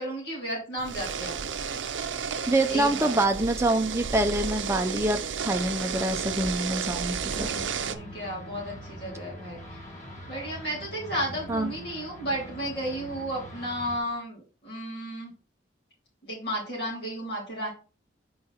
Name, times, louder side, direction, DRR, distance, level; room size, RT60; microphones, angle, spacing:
voice 1, 0.0-1.4 2.7-3.2 7.2-9.8 10.3-15.3 16.2-17.7, right 1 dB, 55° left, -4 dB, 3.4 m, -33 dB
sound 1, 0.8-8.0, right 6 dB, 75° right, 0.6 m, -32 dB
voice 2, 2.5-7.5 11.5-11.7, right 1 dB, 15° right, 5 dB, 0.5 m, -26 dB
sound 2, 7.1-14.0, left 1 dB, 40° left, 1.9 m, -43 dB
5.1 x 4.7 x 4.2 m, 0.34 s
head